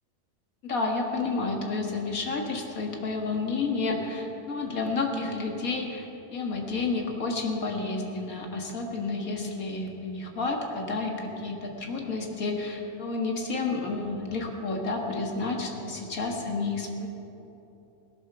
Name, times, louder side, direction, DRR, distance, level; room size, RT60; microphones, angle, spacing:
voice 1, 0.6-6.1 6.3-17.1, left 3 dB, 80° left, 2 dB, 2.1 m, -30 dB
17.5 x 10.5 x 6.9 m, 3.0 s
omnidirectional pair, 1.5 m